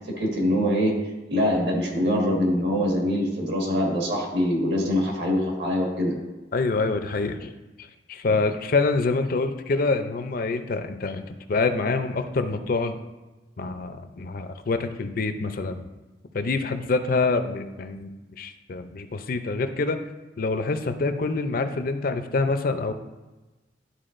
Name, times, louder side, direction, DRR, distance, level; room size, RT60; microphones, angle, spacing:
voice 1, 0.2-0.9 1.3-6.1, equal, 70° right, -2 dB, 1.8 m, -24 dB
voice 2, 6.5-7.5 7.8-13.0 13.6-15.9 16.3-18.1 18.4-20.0 20.4-22.9, left 3 dB, 55° left, 8 dB, 0.5 m, -26 dB
11.5 x 4.5 x 2.5 m, 1.1 s
head